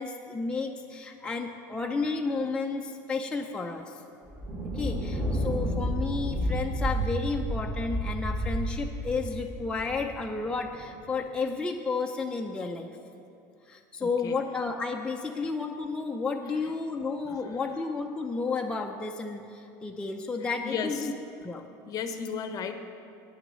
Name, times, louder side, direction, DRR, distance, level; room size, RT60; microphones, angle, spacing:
voice 1, 0.0-4.0 4.7-12.9 13.7-21.1 21.4-21.7, left 4 dB, 10° left, 1 dB, 0.6 m, -32 dB
Thunder, 4.3-10.9, equal, 20° right, 2.4 m, -31 dB
voice 2, 5.0-5.6 14.0-14.4 17.3-17.4 20.6-21.1 21.9-22.7, left 6 dB, 40° left, 8 dB, 0.8 m, -35 dB
9.6 x 6.0 x 7.5 m, 2.7 s
supercardioid pair, 115°, 9 cm